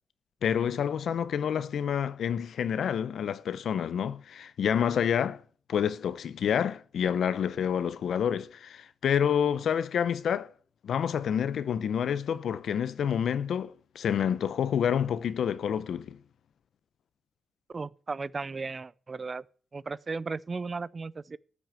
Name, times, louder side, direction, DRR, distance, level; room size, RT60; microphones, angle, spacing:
voice 1, 0.4-5.4 5.7-10.5 10.8-16.2, left 8 dB, 80° left, 0.7 m, -28 dB
voice 2, 17.7-19.4 19.7-21.4, right 4 dB, 35° right, 0.5 m, -35 dB
13.5 x 6.2 x 7.0 m
cardioid pair, 100°, 0 cm